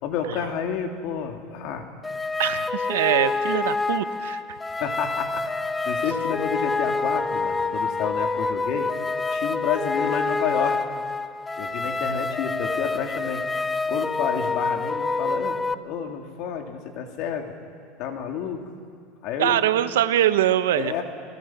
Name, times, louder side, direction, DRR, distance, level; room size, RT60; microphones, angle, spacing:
voice 1, 0.0-1.9 4.8-5.4 5.8-8.9 9.3-10.8 11.6-13.4 13.9-15.6 15.8-17.5 18.0-18.6 19.2-19.6 20.7-21.0, left 8 dB, 60° left, 3 dB, 3.1 m, -30 dB
sound 1, 2.0-15.7, left 3 dB, 15° left, 0.7 m, -27 dB
voice 2, 2.4-4.6 19.4-21.0, right 12 dB, 90° right, 12 dB, 1.0 m, -23 dB
30.0 x 20.0 x 6.0 m, 2.2 s
supercardioid pair, 115°, 0 cm